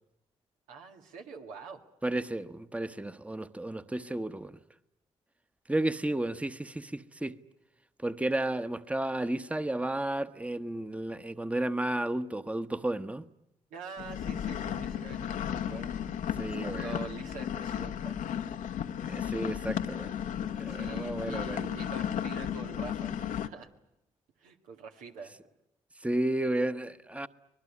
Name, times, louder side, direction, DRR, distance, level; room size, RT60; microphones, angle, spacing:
voice 1, 0.7-1.8 13.7-16.0 16.6-18.2 20.7-23.7 24.4-25.4, right 5 dB, 90° right, 1.9 m, -45 dB
voice 2, 2.0-4.6 5.7-7.4 8.0-13.3 16.4-17.0 19.1-20.2 20.6-21.7 26.0-27.3, right 1 dB, 10° right, 1.1 m, -32 dB
sound 1, 14.0-23.5, left 9 dB, 80° left, 1.1 m, -34 dB
25.5 x 20.0 x 9.8 m
supercardioid pair, 50°, 13 cm